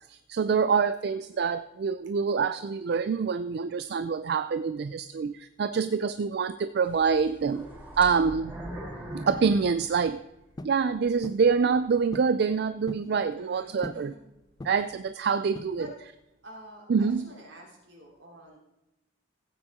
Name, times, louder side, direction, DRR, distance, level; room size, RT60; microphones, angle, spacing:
voice 1, 0.1-7.7 8.0-8.5 9.1-10.2 10.6-14.1 14.6-15.9 16.9-17.2, right 5 dB, 60° right, 12 dB, 0.4 m, -26 dB
sound 1, 6.8-10.6 11.0-11.1 11.8-11.9, right 1 dB, 10° right, 3.1 m, -41 dB
sound 2, 10.6-10.8 11.2-11.5 12.1-12.4 12.7-13.1 13.8-14.1 14.6-15.0 15.6-16.0, left 2 dB, 20° left, 0.4 m, -41 dB
voice 2, 13.3-14.3 15.2-15.4 15.7-15.9 16.4-18.6, equal, 80° right, -1 dB, 3.4 m, -48 dB
16.0 x 8.9 x 3.6 m, 0.91 s
head